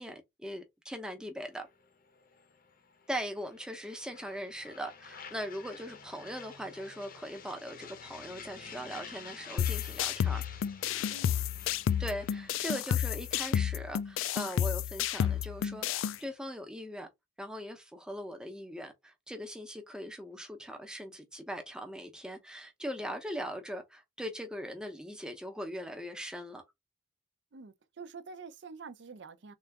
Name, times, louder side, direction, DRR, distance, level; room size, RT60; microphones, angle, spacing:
voice 1, 0.0-1.7 3.1-10.4 12.0-17.1 17.4-26.6, equal, 5° right, 0.7 m, -40 dB
sound 1, 1.5-16.3, left 6 dB, 45° left, 0.7 m, -51 dB
sound 2, 9.6-16.2, left 9 dB, 75° left, 0.3 m, -31 dB
voice 2, 11.1-11.5 27.5-29.5, right 4 dB, 60° right, 0.5 m, -47 dB
3.7 x 2.4 x 3.3 m
head